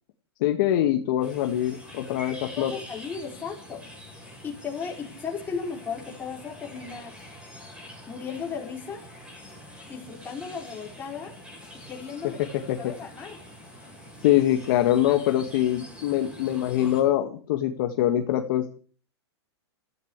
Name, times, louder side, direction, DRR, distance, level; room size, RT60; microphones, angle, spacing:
voice 1, 0.4-2.7 12.7-12.9 14.2-18.7, left 12 dB, 50° left, 5 dB, 1.9 m, -24 dB
sound 1, 1.2-17.0, left 1 dB, 5° right, 7.2 m, -45 dB
voice 2, 2.6-3.9 4.4-7.1 8.1-9.0 9.9-11.3 11.9-12.4 12.8-13.4, left 6 dB, 15° left, -1 dB, 5.4 m, -35 dB
29.5 x 14.5 x 3.3 m, 0.40 s
hypercardioid pair, 150°, 14 cm